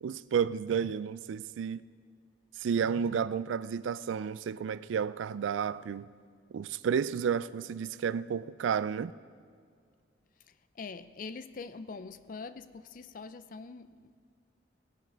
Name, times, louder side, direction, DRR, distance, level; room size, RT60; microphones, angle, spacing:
voice 1, 0.0-1.8 2.6-6.1 6.5-9.1, right 7 dB, 85° right, 17 dB, 0.3 m, -31 dB
voice 2, 10.5-14.2, left 4 dB, 45° left, 13 dB, 0.4 m, -44 dB
18.0 x 10.5 x 3.4 m, 2.1 s
head